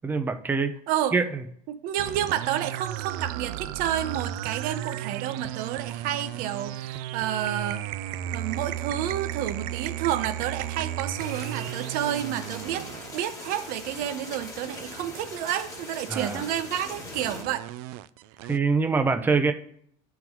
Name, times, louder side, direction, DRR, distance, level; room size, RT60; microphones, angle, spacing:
voice 1, 0.0-0.8 1.1-1.4 16.1-16.5 18.5-19.5, right 4 dB, 10° right, 7 dB, 0.5 m, -24 dB
voice 2, 1.7-7.8 8.3-12.9 13.1-17.6, right 11 dB, 50° right, 9 dB, 0.8 m, -30 dB
sound 1, 2.0-15.0 16.0-18.6, right 13 dB, 70° right, 0.4 m, -35 dB
sound 2, 11.2-17.4, left 2 dB, 15° left, 1.2 m, -41 dB
11.5 x 3.8 x 3.0 m, 0.65 s
cardioid pair, 160°, 18 cm